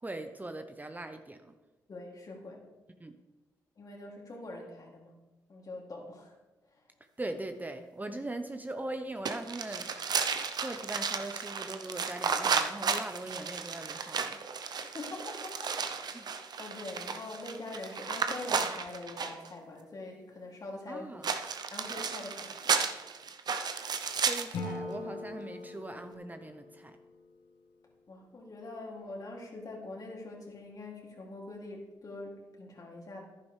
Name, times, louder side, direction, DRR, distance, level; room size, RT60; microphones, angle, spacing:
voice 1, 0.0-1.5 3.0-3.2 7.2-10.2 10.6-14.4 16.1-16.4 20.9-21.3 24.3-27.0, right 2 dB, 20° right, 7 dB, 0.8 m, -40 dB
voice 2, 1.9-2.7 3.8-5.2 5.5-6.3 6.7-6.8 14.9-16.3 16.6-21.1 21.7-22.8 28.1-33.3, left 2 dB, 50° left, -1 dB, 2.8 m, -44 dB
sound 1, 9.2-19.5 21.2-24.6, right 6 dB, 55° right, 0.8 m, -33 dB
Acoustic guitar / Strum, 24.5-27.7, left 2 dB, 75° left, 1.3 m, -42 dB
11.0 x 9.9 x 3.4 m, 1.1 s
supercardioid pair, 50°, 8 cm